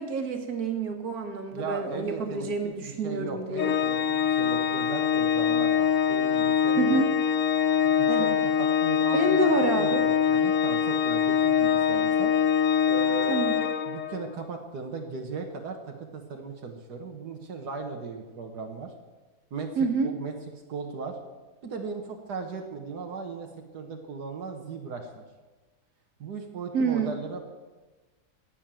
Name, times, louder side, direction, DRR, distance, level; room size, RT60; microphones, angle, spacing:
voice 1, 0.0-3.7 6.8-7.1 8.1-8.4 9.1-10.0 13.3-13.6 19.8-20.1 26.7-27.1, right 3 dB, 70° right, 5 dB, 2.0 m, -28 dB
voice 2, 1.5-7.0 7.8-9.4 9.8-12.3 12.9-13.3 13.9-18.9 19.5-20.3 20.7-21.2 21.6-23.5 23.7-25.2 26.2-27.5, right 4 dB, 85° right, 2 dB, 1.9 m, -37 dB
Organ, 3.6-14.3, left 8 dB, 60° left, 1.1 m, -24 dB
15.5 x 8.7 x 7.6 m, 1.2 s
omnidirectional pair, 1.7 m